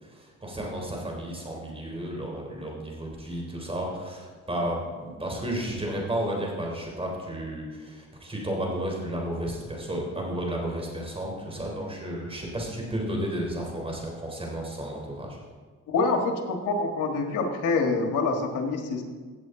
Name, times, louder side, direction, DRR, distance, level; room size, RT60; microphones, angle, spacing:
voice 1, 0.0-15.4, right 1 dB, 20° right, -1 dB, 3.5 m, -32 dB
voice 2, 15.9-19.0, left 3 dB, 85° left, 4 dB, 1.6 m, -26 dB
16.0 x 7.7 x 3.8 m, 1.5 s
cardioid pair, 90°, 30 cm